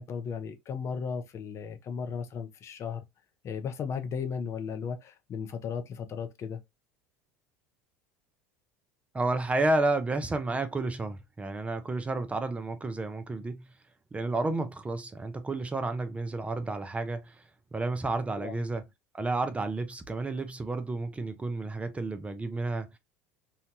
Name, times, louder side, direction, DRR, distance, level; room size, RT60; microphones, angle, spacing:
voice 1, 0.0-3.0 3.4-6.6 18.4-18.6, left 6 dB, 40° left, 0.5 m, -35 dB
voice 2, 9.1-13.7 14.1-17.4 17.7-18.8 19.1-23.0, right 2 dB, 15° right, 0.4 m, -31 dB
2.8 x 2.2 x 2.6 m
hypercardioid pair, 75°, 7 cm